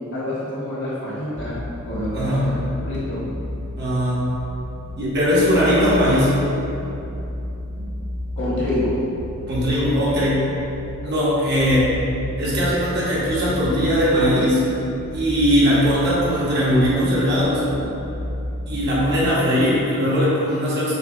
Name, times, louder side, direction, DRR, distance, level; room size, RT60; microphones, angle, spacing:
voice 1, 0.0-2.5 2.8-3.3 8.4-9.1, left 1 dB, 55° left, -8 dB, 1.2 m, -27 dB
sound 1, 1.4-19.1, left 1 dB, 65° right, 1.4 m, -33 dB
voice 2, 2.1-2.5 3.8-4.3 5.0-6.4 9.5-10.5 11.0-11.9 12.4-14.7 15.1-17.6 18.7-20.9, equal, 50° right, -8 dB, 1.0 m, -19 dB
6.6 x 2.2 x 2.6 m, 2.9 s
head